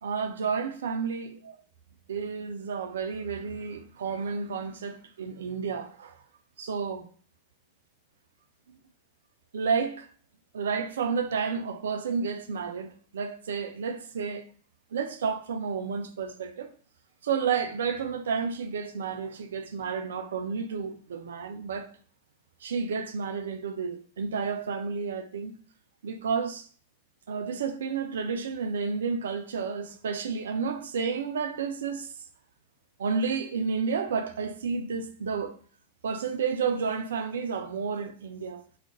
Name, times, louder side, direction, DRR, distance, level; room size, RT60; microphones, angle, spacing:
voice 1, 0.0-1.6 2.1-6.2 6.6-7.1 8.7-8.8 9.5-10.1 10.5-14.4 14.9-16.7 17.2-21.9 22.6-25.5 26.0-26.7 27.3-32.1 33.0-35.6 36.0-38.6, right 5 dB, 65° right, 0.3 m, -31 dB
2.4 x 2.1 x 3.6 m
figure-of-eight pair, 90°, 0 cm